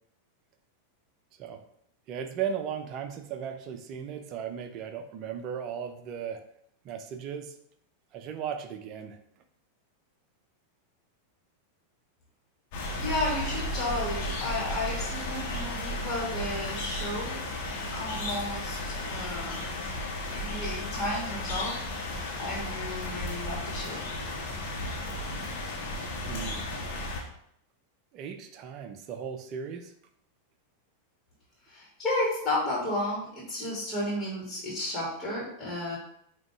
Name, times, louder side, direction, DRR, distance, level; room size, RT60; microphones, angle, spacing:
voice 1, 2.1-6.4 6.8-7.6 8.1-9.2 26.3-26.7 28.1-29.9, right 7 dB, 35° right, 7 dB, 0.7 m, -36 dB
sound 1, 12.7-27.2, left 1 dB, 45° left, 1.6 m, -34 dB
voice 2, 13.0-17.4 17.9-19.7 20.3-21.8 22.4-24.1 31.7-36.0, left 1 dB, 20° left, -5 dB, 2.5 m, -33 dB
9.0 x 3.0 x 3.6 m, 0.70 s
figure-of-eight pair, 90°, 0 cm